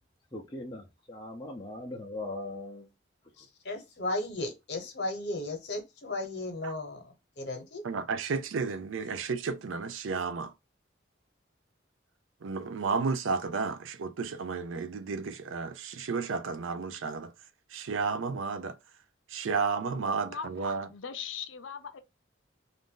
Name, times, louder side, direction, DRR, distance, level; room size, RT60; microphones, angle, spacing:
voice 1, 0.3-2.9, left 2 dB, 20° left, 0.5 m, -40 dB
voice 2, 3.4-7.8, left 2 dB, 60° left, 1.0 m, -35 dB
voice 3, 7.8-10.5 12.4-17.3 17.7-18.8 19.3-20.9, right 4 dB, 90° right, 0.5 m, -32 dB
voice 4, 20.9-22.0, left 7 dB, 80° left, 0.5 m, -39 dB
2.6 x 2.5 x 3.7 m
head